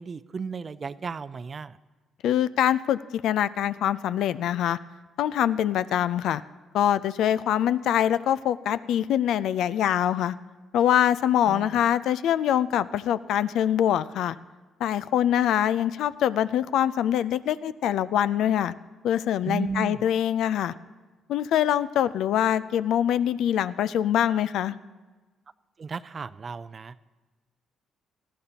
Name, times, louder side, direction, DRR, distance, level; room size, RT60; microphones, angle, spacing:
voice 1, 0.0-1.8 11.4-11.8 19.4-20.1 25.8-27.1, right 5 dB, 40° right, 16 dB, 0.4 m, -34 dB
voice 2, 2.2-4.8 5.2-6.4 6.7-10.4 10.7-14.4 14.8-18.7 19.0-20.7 21.3-24.7, left 10 dB, 80° left, 15 dB, 0.3 m, -24 dB
19.5 x 13.0 x 2.9 m, 1.3 s
cardioid pair, 90°, 0 cm